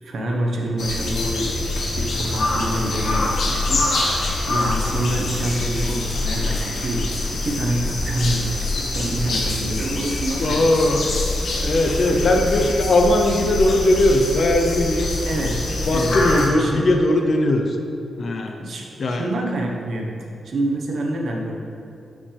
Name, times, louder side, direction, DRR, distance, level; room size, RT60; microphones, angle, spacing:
voice 1, 0.0-1.7 2.0-11.0 12.1-12.3 15.2-16.2 16.5-17.0 18.6-20.2 20.4-21.6, right 1 dB, 65° right, 0 dB, 1.1 m, -27 dB
sound 1, 0.8-16.5, left 2 dB, 70° left, 1.6 m, -25 dB
voice 2, 10.4-11.1 11.6-15.1 15.9-17.8 18.2-18.6 19.0-19.3, left 1 dB, 50° left, 3 dB, 0.7 m, -19 dB
12.5 x 5.4 x 3.4 m, 2.6 s
cardioid pair, 110°, 0 cm